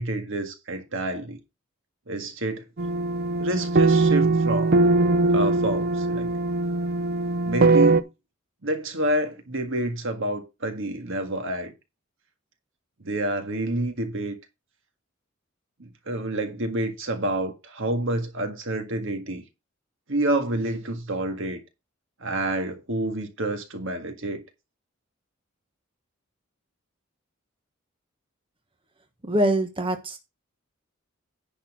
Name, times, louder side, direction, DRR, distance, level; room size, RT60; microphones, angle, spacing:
voice 1, 0.0-1.4 2.1-2.7 3.4-4.8 5.3-6.3 7.4-8.0 8.6-11.7 13.0-14.3 15.8-19.4 20.1-21.6 22.2-24.4, right 1 dB, 65° right, 1.8 m, -28 dB
sound 1, 2.8-8.0, right 3 dB, 50° right, 0.6 m, -21 dB
voice 2, 29.2-30.2, right 1 dB, 25° right, 1.2 m, -24 dB
10.5 x 4.3 x 6.1 m
head